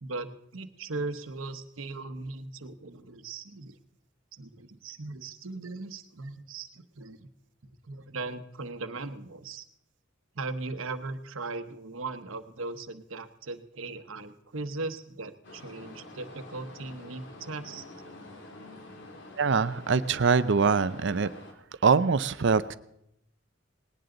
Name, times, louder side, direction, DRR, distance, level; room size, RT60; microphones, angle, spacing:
voice 1, 0.0-3.8 4.3-7.3 7.9-9.6 10.3-17.8, right 3 dB, 90° right, 10 dB, 1.1 m, -38 dB
sound 1, 15.4-21.5, left 2 dB, 60° left, 2.6 m, -47 dB
voice 2, 19.4-21.3 21.8-22.8, right 5 dB, 65° right, 14 dB, 0.6 m, -23 dB
19.5 x 18.5 x 3.9 m, 0.77 s
head